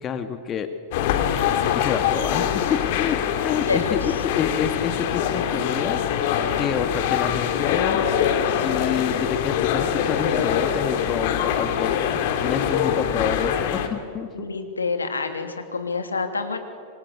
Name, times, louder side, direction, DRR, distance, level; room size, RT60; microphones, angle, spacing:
voice 1, 0.0-0.7 1.4-3.2 3.4-6.0 6.6-8.0 8.6-14.5, left 7 dB, 30° left, 8 dB, 2.0 m, -28 dB
sound 1, 0.9-13.9, left 9 dB, 55° left, 2.8 m, -23 dB
voice 2, 3.7-4.0 14.3-16.6, left 4 dB, 85° left, 6 dB, 3.0 m, -27 dB
26.0 x 26.0 x 8.4 m, 2.3 s
figure-of-eight pair, 95°, 0 cm